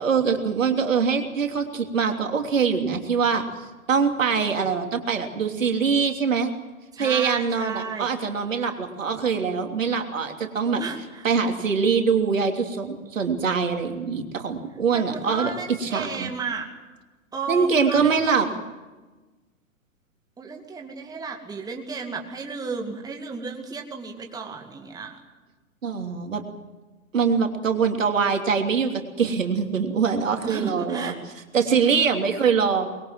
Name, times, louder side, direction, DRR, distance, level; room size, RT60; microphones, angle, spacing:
voice 1, 0.0-3.4 3.9-6.5 7.0-10.8 11.2-16.3 17.5-18.5 25.8-26.4 27.1-28.9 29.2-31.1 31.5-32.9, right 6 dB, 65° right, 4 dB, 3.2 m, -23 dB
voice 2, 6.9-8.1 10.8-11.3 14.9-16.7 17.3-18.6 20.4-25.2 30.4-31.2, right 5 dB, 10° right, 3 dB, 2.3 m, -33 dB
24.0 x 22.0 x 7.7 m, 1.2 s
figure-of-eight pair, 115°, 41 cm